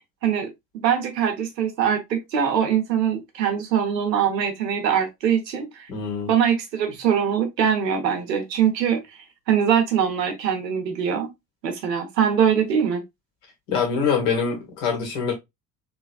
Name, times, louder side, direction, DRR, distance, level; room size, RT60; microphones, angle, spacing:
voice 1, 0.2-5.9 6.3-9.0 9.5-11.3 11.6-13.0, right 8 dB, 80° right, 1.0 m, -22 dB
voice 2, 5.9-6.3 13.7-15.3, left 6 dB, 65° left, 1.7 m, -24 dB
3.3 x 3.1 x 2.4 m
figure-of-eight pair, 55°, 50 cm